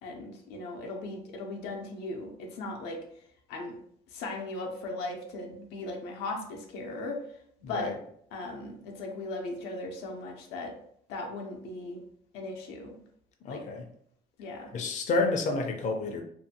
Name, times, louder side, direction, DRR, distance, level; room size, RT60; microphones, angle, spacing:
voice 1, 0.0-3.0 3.5-3.7 4.1-7.2 7.7-7.9 8.3-10.8 11.1-12.0 12.3-13.0 13.5-13.6 14.4-14.7, left 2 dB, 90° left, 2 dB, 0.6 m, -37 dB
voice 2, 7.6-7.9 13.4-13.8 14.7-16.2, left 3 dB, 45° left, 3 dB, 0.5 m, -29 dB
2.6 x 2.5 x 2.7 m, 0.66 s
cardioid pair, 110°, 17 cm